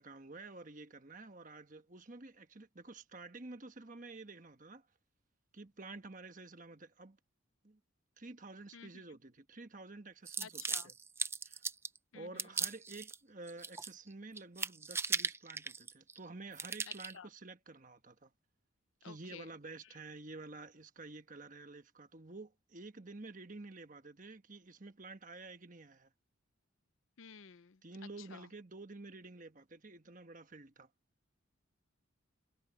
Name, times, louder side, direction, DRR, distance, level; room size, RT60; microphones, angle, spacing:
voice 1, 0.0-4.9 5.5-7.2 7.6-7.8 8.2-10.9 11.4-11.6 12.1-18.3 19.0-26.1 27.8-30.9, right 3 dB, 40° right, 1.2 m, -50 dB
sound 1, 10.3-12.0 12.4-13.2 13.5-14.1 14.4-16.2 16.5-17.1, right 5 dB, 10° right, 0.3 m, -38 dB
voice 2, 10.4-10.9 12.1-12.5 16.9-17.3 19.0-19.5 19.8-20.0 27.2-27.8 28.2-28.5, left 6 dB, 75° left, 0.7 m, -53 dB
head